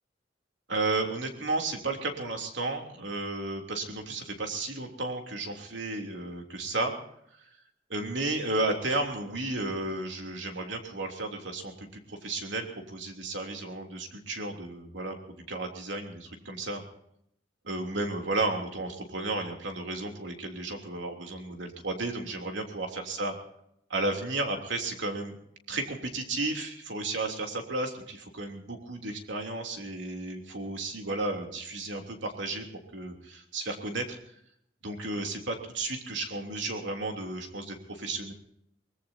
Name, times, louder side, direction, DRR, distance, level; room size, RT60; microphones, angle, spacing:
voice 1, 0.7-7.0 7.3-7.4 7.9-15.1 15.5-16.8 17.6-23.4 23.9-25.3 25.7-32.6 32.9-34.2 34.8-38.3, right 2 dB, 80° right, 3 dB, 3.3 m, -33 dB
23.5 x 20.5 x 2.8 m, 0.72 s
head